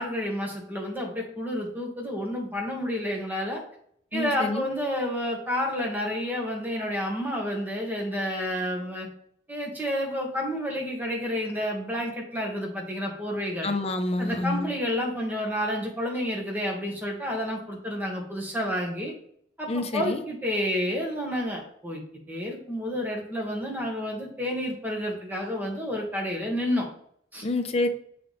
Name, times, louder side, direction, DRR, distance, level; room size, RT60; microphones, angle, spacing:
voice 1, 0.0-3.6 4.1-9.1 9.5-13.7 14.2-19.1 19.6-22.0 22.3-26.9 27.3-27.4, equal, 10° right, -1 dB, 1.5 m, -30 dB
voice 2, 4.1-4.7 13.6-14.7 19.7-20.2 27.4-27.9, left 2 dB, 35° left, 6 dB, 0.7 m, -27 dB
7.4 x 4.0 x 3.2 m, 0.65 s
head